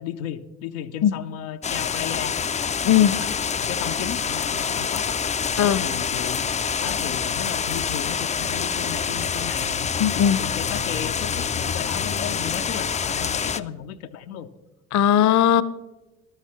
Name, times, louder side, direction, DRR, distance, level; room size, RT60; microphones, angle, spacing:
voice 1, 0.0-2.4 2.9-3.3 3.6-5.2 5.5-9.9 10.2-14.5, left 10 dB, 75° left, 6 dB, 0.7 m, -34 dB
sound 1, 1.6-13.6, left 6 dB, 20° left, 0.4 m, -26 dB
voice 2, 2.8-3.2 5.6-5.8 10.0-10.4 14.9-15.6, left 10 dB, 45° left, 17 dB, 0.7 m, -18 dB
14.0 x 12.5 x 3.2 m, 1.1 s
hypercardioid pair, 55°, 41 cm